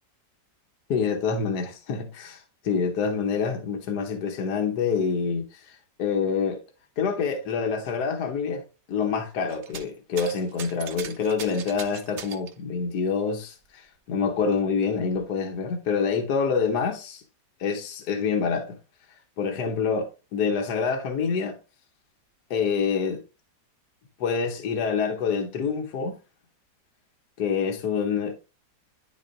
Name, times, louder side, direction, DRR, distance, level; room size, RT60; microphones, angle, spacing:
voice 1, 0.9-6.6 7.0-8.6 8.9-17.2 17.6-18.7 19.4-21.6 22.5-23.2 24.2-26.2 27.4-28.3, left 5 dB, 65° left, 1.3 m, -26 dB
sound 1, 9.5-9.9 10.2-12.6 13.6-13.7 14.2-15.2 16.1-16.2, right 7 dB, 70° right, 0.6 m, -40 dB
10.5 x 3.8 x 2.5 m
omnidirectional pair, 2.0 m